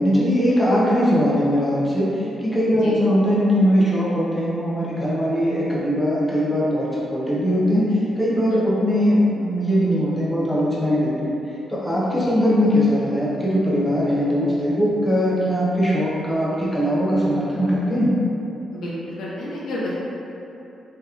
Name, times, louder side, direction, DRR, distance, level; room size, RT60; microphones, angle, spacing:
voice 1, 0.0-6.9 7.1-11.4 11.7-18.1, equal, 5° left, -8 dB, 0.4 m, -20 dB
voice 2, 18.7-19.9, left 1 dB, 70° left, -6 dB, 0.6 m, -30 dB
3.4 x 2.7 x 2.3 m, 2.8 s
wide cardioid pair, 175°, 0 cm